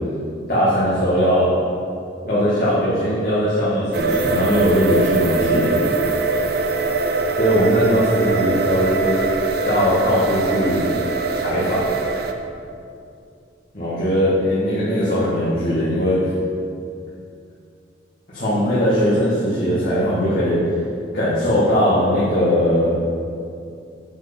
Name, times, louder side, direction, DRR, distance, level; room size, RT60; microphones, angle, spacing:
voice 1, 0.5-1.5 2.2-5.8 7.4-9.2 9.6-10.9 11.3-11.8 13.7-16.3 18.3-20.6 21.1-22.9, equal, 50° left, -11 dB, 2.0 m, -19 dB
sound 1, 3.9-12.3, right 3 dB, 55° right, 0.6 m, -22 dB
8.0 x 4.9 x 7.1 m, 2.5 s
head